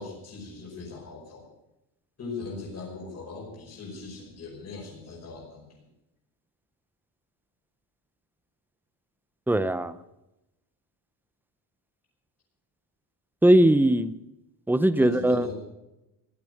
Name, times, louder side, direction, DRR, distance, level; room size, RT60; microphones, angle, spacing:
voice 1, 0.0-1.5 2.2-5.8 14.9-15.5, left 4 dB, 35° left, -2 dB, 5.3 m, -39 dB
voice 2, 9.5-10.0 13.4-14.1 14.7-15.5, right 1 dB, 5° right, 14 dB, 0.5 m, -20 dB
16.5 x 12.0 x 6.5 m, 0.92 s
cardioid pair, 160°, 42 cm